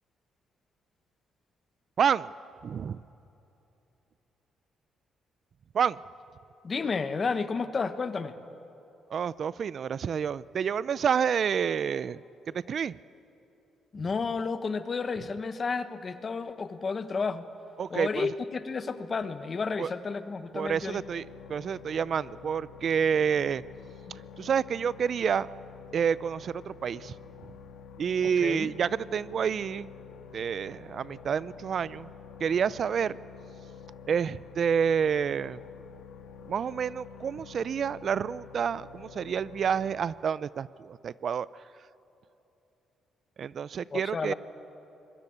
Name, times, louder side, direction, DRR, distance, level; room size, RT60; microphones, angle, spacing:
voice 1, 2.0-2.3 2.6-3.0 5.7-6.0 9.1-12.2 12.7-13.0 17.8-18.3 19.8-19.9 20.5-23.6 24.1-25.5 25.9-27.1 28.0-29.9 30.3-32.1 32.4-33.2 34.1-35.6 36.5-41.5 43.4-44.3, right 7 dB, 55° right, 19 dB, 0.5 m, -29 dB
voice 2, 6.6-8.4 13.9-17.4 17.9-21.0 24.1-24.2 28.4-28.7 43.9-44.3, left 4 dB, 40° left, 11 dB, 1.3 m, -31 dB
sound 1, 20.7-39.9, left 6 dB, 80° left, 1.7 m, -48 dB
25.5 x 21.5 x 8.6 m, 3.0 s
cardioid pair, 90°, 0 cm